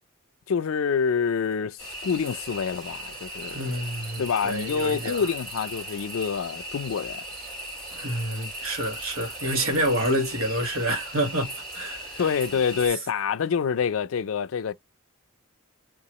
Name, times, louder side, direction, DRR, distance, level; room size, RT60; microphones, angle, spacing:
voice 1, 0.5-3.6 4.2-7.2 12.2-14.7, left 6 dB, 75° left, 0.4 m, -27 dB
sound 1, 1.8-12.9, equal, 45° right, 2.4 m, -38 dB
voice 2, 3.5-5.3 7.9-12.3, right 1 dB, 80° right, 1.3 m, -28 dB
3.7 x 2.4 x 2.9 m
head